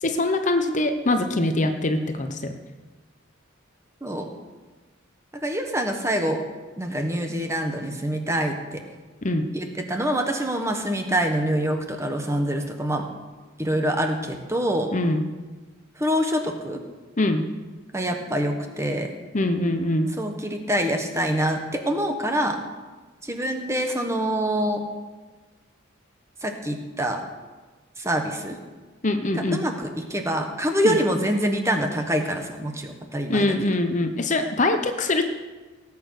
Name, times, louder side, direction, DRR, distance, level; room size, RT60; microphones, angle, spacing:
voice 1, 0.0-2.6 9.2-9.5 14.9-15.2 17.2-17.5 19.3-20.1 29.0-29.6 30.8-31.0 33.3-35.3, left 2 dB, 35° left, 6 dB, 0.9 m, -23 dB
voice 2, 5.4-6.4 6.8-8.8 9.5-13.0 13.6-14.9 16.0-16.8 17.9-19.1 20.2-22.6 23.2-24.8 26.4-27.2 28.0-28.6 29.3-33.5, equal, 15° right, 4 dB, 1.4 m, -25 dB
17.5 x 8.5 x 6.6 m, 1.3 s
head